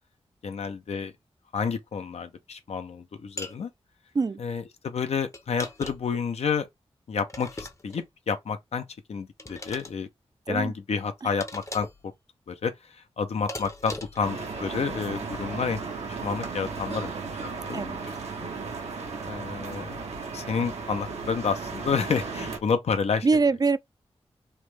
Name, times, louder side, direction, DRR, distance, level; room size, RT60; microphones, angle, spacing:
voice 1, 0.4-1.1 1.5-3.7 4.4-6.7 7.1-10.1 10.5-11.9 12.5-15.8 16.2-18.1 18.4-18.5 19.3-20.0 20.3-23.3, left 6 dB, 80° left, 0.6 m, -30 dB
sound 1, 3.4-3.6 5.3-6.2 7.3-8.1 9.4-9.9 11.4-12.0 13.5-14.3, left 2 dB, 30° left, 0.6 m, -39 dB
sound 2, 14.2-22.6, right 4 dB, 85° right, 0.9 m, -35 dB
voice 2, 23.2-23.8, right 4 dB, 35° right, 0.3 m, -23 dB
3.2 x 2.0 x 3.2 m
cardioid pair, 50°, 11 cm